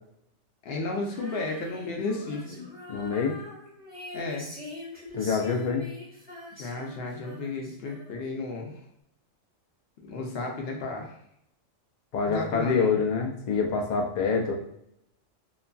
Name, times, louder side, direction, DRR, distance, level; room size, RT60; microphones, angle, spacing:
voice 1, 0.6-2.6 4.1-4.5 6.5-8.8 10.0-11.2 12.2-13.0, left 3 dB, 60° left, 1 dB, 0.7 m, -33 dB
Female singing, 1.1-8.4, left 2 dB, 10° right, 0.8 m, -44 dB
voice 2, 2.9-3.4 5.1-5.9 12.1-14.5, left 5 dB, 80° left, 1 dB, 0.3 m, -26 dB
2.9 x 2.4 x 2.3 m, 0.75 s
omnidirectional pair, 1.3 m